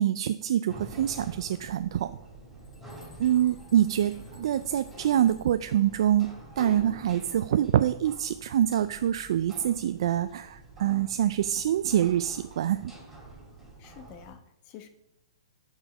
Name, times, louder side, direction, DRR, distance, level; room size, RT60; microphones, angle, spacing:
voice 1, 0.0-2.1 3.2-12.9, right 11 dB, 60° right, 12 dB, 0.3 m, -25 dB
sound 1, 0.7-14.3, right 2 dB, 5° right, 2.7 m, -46 dB
sound 2, 2.2-2.3 2.6-5.7, left 4 dB, 75° left, 3.5 m, -59 dB
voice 2, 13.8-14.9, left 8 dB, 35° left, 9 dB, 1.0 m, -48 dB
8.9 x 5.0 x 5.4 m, 0.80 s
hypercardioid pair, 140°, 3 cm